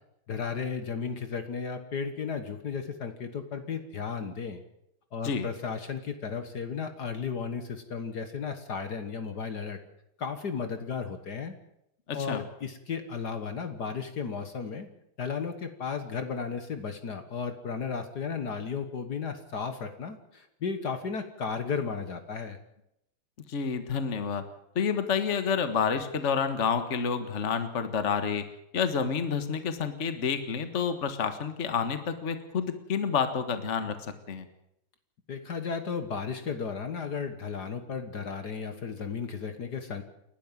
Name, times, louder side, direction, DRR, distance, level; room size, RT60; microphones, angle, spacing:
voice 1, 0.3-4.6 5.1-9.8 10.2-11.6 12.1-14.9 15.2-22.6 35.3-40.0, left 5 dB, 55° left, 8 dB, 1.9 m, -34 dB
voice 2, 12.1-12.4 23.5-24.4 24.8-28.4 28.7-34.0 34.3-34.5, left 6 dB, 40° left, 9 dB, 1.7 m, -29 dB
29.0 x 12.0 x 7.5 m, 0.80 s
omnidirectional pair, 2.2 m